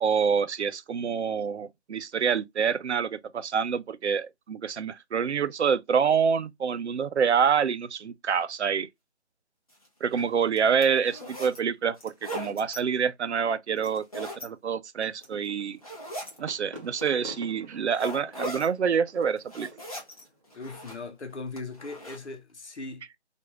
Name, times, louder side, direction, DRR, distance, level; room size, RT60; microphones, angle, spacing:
voice 1, 0.0-8.9 10.0-15.8 16.4-19.7, right 6 dB, 75° right, 0.5 m, -27 dB
sound 1, 9.7-9.9 10.4-11.6 12.0-12.8 13.8-14.5 15.0-15.5 15.8-16.4 17.0-17.1 17.9-18.7 19.2-20.2 20.5-21.1 21.6-22.2, equal, 35° left, 0.7 m, -38 dB
sound 2, 15.2-20.9, equal, 30° right, 0.8 m, -49 dB
voice 2, 20.5-23.0, left 3 dB, 80° left, 0.9 m, -39 dB
2.5 x 2.3 x 2.9 m
figure-of-eight pair, 175°, 34 cm